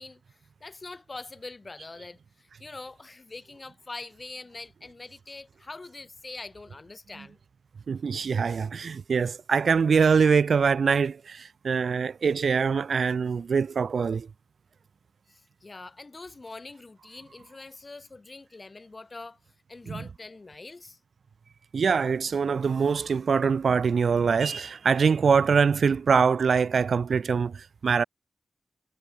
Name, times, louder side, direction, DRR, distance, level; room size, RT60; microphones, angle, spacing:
voice 1, 0.0-7.4 15.3-19.4 19.7-21.0, left 3 dB, 35° left, 4.5 m, -44 dB
voice 2, 7.9-14.3 19.9-20.1 21.7-28.0, right 6 dB, 80° right, 0.4 m, -24 dB
wide cardioid pair, 150°, 0 cm